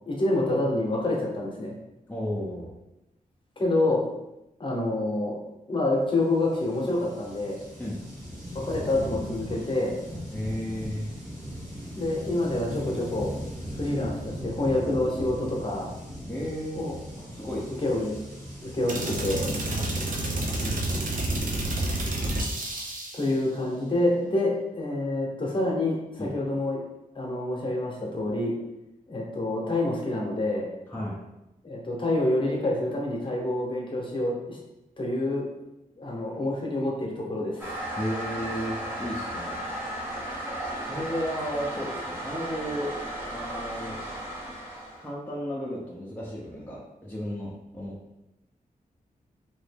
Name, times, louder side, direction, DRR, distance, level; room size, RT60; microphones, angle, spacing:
voice 1, 0.1-1.7 3.6-4.0 4.6-5.4 5.7-7.6 8.5-9.9 12.0-13.3 13.7-15.9 16.7-16.9 17.2-18.2 18.6-19.5 23.1-26.8 27.1-28.5 29.1-30.7 31.6-34.6 35.0-35.5 36.0-37.7, left 2 dB, 35° left, -2 dB, 0.9 m, -27 dB
voice 2, 2.1-2.7 7.8-8.0 10.3-11.1 16.3-16.9 17.3-17.9 19.7-19.9 20.5-21.0 26.2-26.3 30.9-31.2 38.0-39.6 40.0-40.2 40.8-42.9 43.3-44.0 45.0-47.9, equal, 10° left, -6 dB, 0.6 m, -34 dB
sound 1, 6.2-22.3, equal, 80° right, 1.3 m, -39 dB
sound 2, 18.9-23.3, right 1 dB, 65° right, 0.6 m, -29 dB
Toilet flush, 37.6-45.1, right 1 dB, 15° right, 0.8 m, -35 dB
2.8 x 2.5 x 3.5 m, 0.92 s
wide cardioid pair, 110°, 15 cm